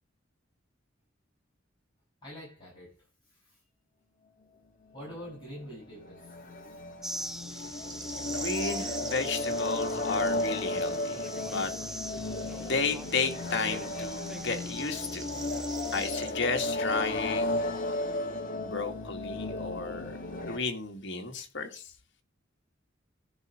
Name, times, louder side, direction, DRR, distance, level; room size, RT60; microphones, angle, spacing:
voice 1, 2.2-2.9 3.3-3.6 4.9-6.8 7.1-7.2, equal, 25° left, 7.9 m, -46 dB
sound 1, 5.0-20.6, left 2 dB, 45° left, 1.8 m, -34 dB
sound 2, 7.0-16.1, right 1 dB, ahead, 0.7 m, -43 dB
voice 2, 7.5-18.0 18.6-21.9, left 4 dB, 60° left, 2.0 m, -34 dB
sound 3, 7.9-9.3 12.4-12.5 14.6-16.3, right 8 dB, 40° right, 1.2 m, -42 dB
14.0 x 5.8 x 5.1 m
head